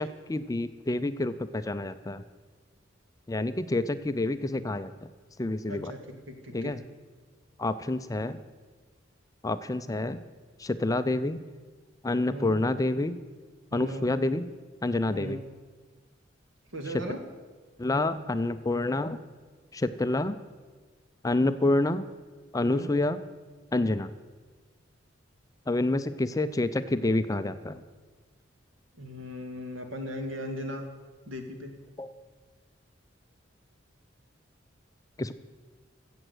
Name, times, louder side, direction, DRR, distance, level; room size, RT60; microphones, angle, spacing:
voice 1, 0.0-2.2 3.3-5.1 5.4-5.9 6.5-6.8 7.6-8.4 9.4-10.2 10.6-11.4 12.0-13.2 13.7-14.4 14.8-15.4 17.8-19.2 19.7-20.4 21.2-22.1 22.5-23.2 23.7-24.1 25.7-27.8 32.0-32.1 35.2-35.3, left 2 dB, 20° left, 12 dB, 0.4 m, -28 dB
voice 2, 5.7-6.0 6.3-6.7 12.3-12.6 13.7-14.1 15.1-15.4 16.7-17.2 22.6-22.9 23.7-24.0 29.0-30.9 31.3-31.7, equal, 75° right, 5 dB, 2.0 m, -37 dB
15.0 x 7.8 x 8.0 m, 1.4 s
head